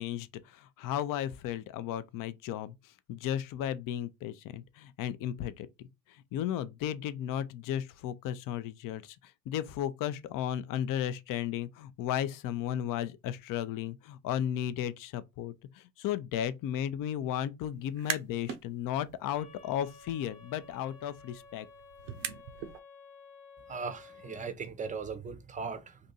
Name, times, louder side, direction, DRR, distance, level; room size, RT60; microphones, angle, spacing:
voice 1, 0.0-5.7 6.1-21.7, left 10 dB, 45° left, 0.5 m, -35 dB
sound 1, 17.8-18.6 19.0-22.8, right 9 dB, 90° right, 0.7 m, -42 dB
sound 2, 19.3-24.5, left 4 dB, 80° left, 1.4 m, -53 dB
voice 2, 23.7-26.0, right 5 dB, 15° right, 0.6 m, -38 dB
2.6 x 2.6 x 4.0 m
hypercardioid pair, 75°, 49 cm